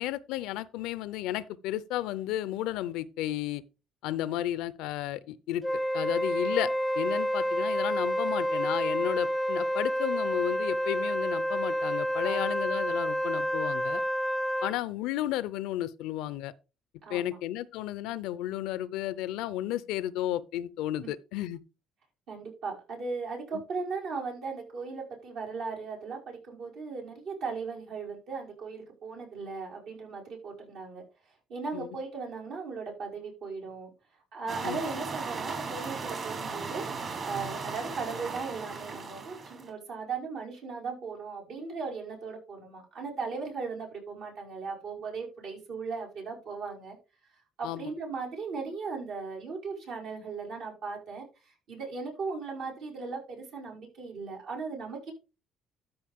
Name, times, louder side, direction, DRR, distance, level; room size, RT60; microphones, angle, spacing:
voice 1, 0.0-3.6 4.0-6.7 7.0-14.0 14.6-16.5 17.1-21.6 23.5-23.6 31.7-31.9 34.6-34.8 47.6-47.8, left 13 dB, 90° left, 0.5 m, -33 dB
Wind instrument woodwind instrument, 5.6-14.8, equal, 10° left, 0.3 m, -29 dB
voice 2, 12.2-12.5 17.0-17.4 21.0-21.1 22.3-31.0 31.5-33.9 34.3-36.9 37.2-47.0 47.6-55.1, right 4 dB, 75° right, 5.3 m, -37 dB
sound 1, 34.5-39.7, right 4 dB, 45° right, 3.2 m, -37 dB
13.0 x 5.1 x 3.6 m
cardioid pair, 90°, 0 cm